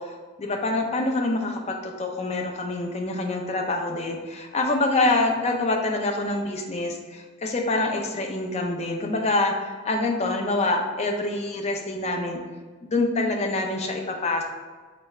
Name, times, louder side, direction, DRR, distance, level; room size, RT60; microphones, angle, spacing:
voice 1, 0.0-12.4 12.8-14.4, left 2 dB, 30° left, 2 dB, 0.5 m, -26 dB
5.1 x 2.4 x 4.2 m, 1.5 s
head